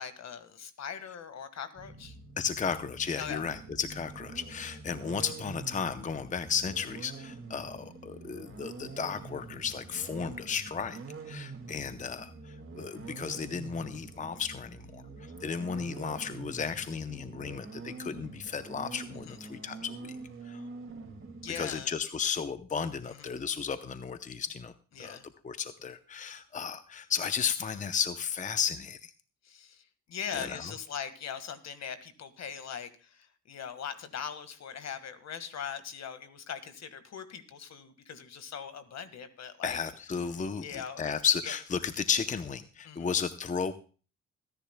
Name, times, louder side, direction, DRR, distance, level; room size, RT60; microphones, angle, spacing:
voice 1, 0.0-2.2 3.2-3.4 19.3-19.4 21.4-21.9 23.1-23.4 25.0-25.2 29.5-29.8 30.1-39.8 40.6-41.1 41.4-41.5 42.8-43.1, left 7 dB, 60° left, 10 dB, 1.7 m, -41 dB
sound 1, 1.8-21.6, right 4 dB, 45° right, 2.3 m, -45 dB
voice 2, 2.4-11.0 11.3-15.0 15.4-20.1 20.5-20.6 21.6-24.7 25.0-25.2 25.4-29.1 30.3-30.7 39.6-43.7, left 6 dB, 25° left, 11 dB, 0.7 m, -34 dB
26.0 x 10.5 x 2.2 m, 0.37 s
cardioid pair, 90°, 30 cm